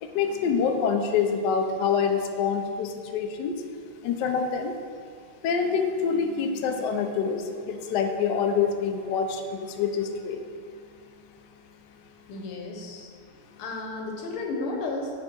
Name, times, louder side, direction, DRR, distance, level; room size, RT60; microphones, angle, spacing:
voice 1, 0.0-3.5 4.0-4.7 5.4-10.4, left 6 dB, 70° left, 4 dB, 1.0 m, -26 dB
voice 2, 12.3-13.1 13.6-15.2, left 2 dB, 85° left, 0 dB, 1.8 m, -33 dB
9.2 x 3.3 x 4.4 m, 2.1 s
omnidirectional pair, 2.3 m